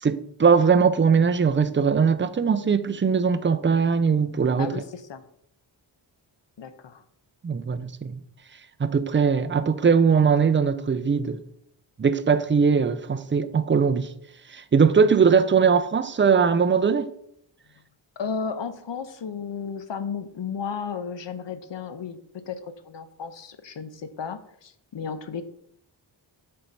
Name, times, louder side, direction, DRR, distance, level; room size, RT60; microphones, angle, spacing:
voice 1, 0.0-4.7 7.4-8.2 8.8-11.4 12.0-14.1 14.5-17.1, right 6 dB, 25° right, 0.4 m, -20 dB
voice 2, 4.6-5.2 6.6-7.0 18.2-25.4, left 6 dB, 65° left, 0.8 m, -34 dB
7.3 x 4.4 x 5.4 m
wide cardioid pair, 120°, 47 cm